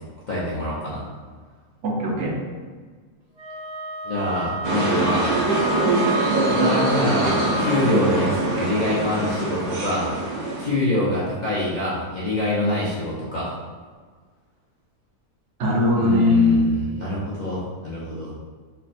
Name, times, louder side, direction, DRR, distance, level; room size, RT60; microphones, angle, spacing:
voice 1, 0.3-1.0 4.0-5.3 6.4-10.1 10.6-13.5 16.0-18.3, left 1 dB, 45° left, -9 dB, 0.6 m, -25 dB
voice 2, 1.8-2.4 15.6-16.6, left 2 dB, 60° right, -2 dB, 1.0 m, -19 dB
Wind instrument woodwind instrument, 3.3-7.9, equal, 35° right, 0.8 m, -31 dB
sound 1, 4.6-10.7, right 2 dB, 90° right, 1.2 m, -23 dB
3.3 x 2.2 x 4.1 m, 1.5 s
omnidirectional pair, 1.5 m